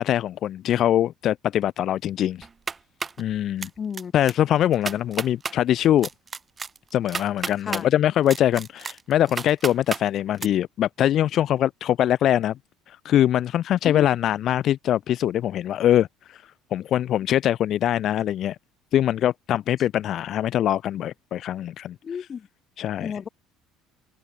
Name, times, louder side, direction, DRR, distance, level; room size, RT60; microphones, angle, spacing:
voice 1, 0.0-2.5 3.2-3.7 4.1-6.1 6.9-12.5 12.9-16.4 16.7-18.6 18.9-21.9 22.8-23.1, left 11 dB, 45° left, 0.9 m, -23 dB
sound 1, 2.4-3.2 3.6-4.0 4.3-4.4 4.7-5.6 6.0-7.8 8.3-10.0 10.4-10.5, right 5 dB, 20° right, 0.8 m, -31 dB
voice 2, 3.8-4.1 7.6-7.8 13.8-14.1 22.0-22.5 23.0-23.3, left 7 dB, 30° left, 1.4 m, -32 dB
cardioid pair, 145°, 0 cm